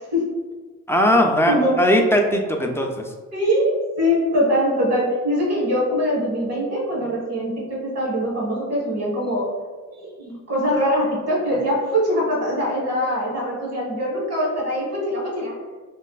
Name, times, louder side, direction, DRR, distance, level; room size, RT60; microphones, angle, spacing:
voice 1, 0.9-3.1, equal, 10° left, 2 dB, 0.3 m, -19 dB
voice 2, 1.5-1.9 3.3-9.5 9.9-15.5, equal, 45° right, -4 dB, 1.4 m, -23 dB
3.1 x 2.5 x 2.3 m, 1.4 s
cardioid pair, 80°, 33 cm